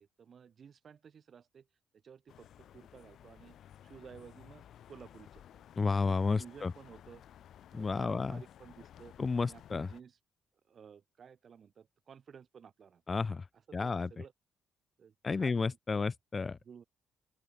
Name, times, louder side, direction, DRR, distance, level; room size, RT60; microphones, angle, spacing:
voice 1, 0.0-1.7 2.0-3.6 3.8-5.6 6.1-7.2 7.7-9.2 9.4-10.2 10.7-13.0 13.7-14.3 15.0-16.0 16.6-16.8, right 7 dB, 50° right, 5.6 m, -54 dB
sound 1, 2.3-10.0, left 10 dB, 70° left, 1.7 m, -56 dB
voice 2, 5.8-6.7 7.7-8.3 9.2-9.9 13.1-13.4 13.7-14.1 15.2-16.6, left 4 dB, 30° left, 0.4 m, -31 dB
open air
cardioid pair, 90°, 0 cm